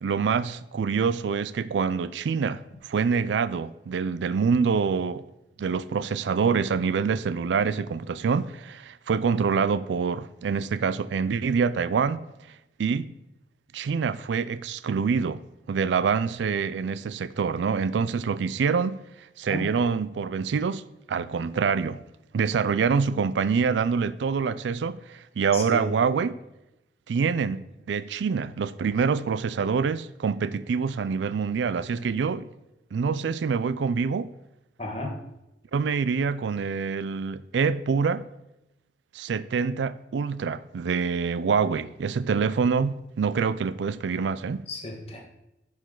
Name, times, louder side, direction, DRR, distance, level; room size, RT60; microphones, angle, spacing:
voice 1, 0.0-5.2 5.6-12.2 12.8-13.1 13.7-15.4 15.7-19.0 19.4-20.8 21.1-22.0 22.3-26.4 27.1-32.5 32.9-34.3 35.7-38.2 39.1-44.7, right 5 dB, 85° right, 0.4 m, -26 dB
voice 2, 25.5-26.0 34.8-35.1 44.7-45.3, left 1 dB, 35° left, 1.5 m, -33 dB
10.0 x 5.1 x 3.8 m
head